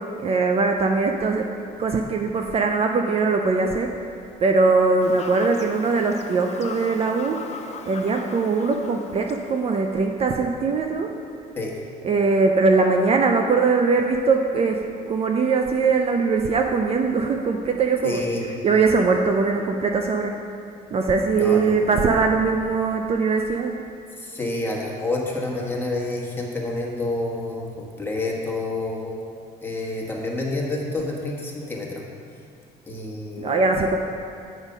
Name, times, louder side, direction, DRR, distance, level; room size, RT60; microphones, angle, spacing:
voice 1, 0.0-1.5 1.8-3.9 4.4-7.5 7.9-11.1 12.0-18.2 18.6-20.4 20.9-23.7 33.4-34.0, right 4 dB, 35° right, 3 dB, 0.4 m, -21 dB
Fowl / Bird vocalization bird call bird song, 5.0-10.0, left 5 dB, 40° left, 0.6 m, -39 dB
voice 2, 18.0-18.4 21.4-22.0 24.2-29.2 29.6-32.0 32.8-33.7, left 2 dB, 15° left, -2 dB, 1.4 m, -28 dB
8.1 x 5.0 x 5.4 m, 2.5 s
cardioid pair, 110°, 17 cm